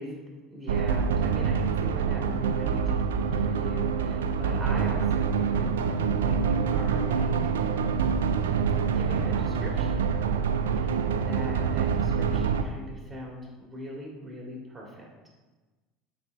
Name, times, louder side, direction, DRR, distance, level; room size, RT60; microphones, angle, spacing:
voice 1, 0.0-7.4 8.8-15.3, equal, 10° right, -3 dB, 2.2 m, -40 dB
sound 1, 0.7-12.6, right 6 dB, 90° right, 0.4 m, -26 dB
8.5 x 4.2 x 3.5 m, 1.2 s
hypercardioid pair, 85°, 0 cm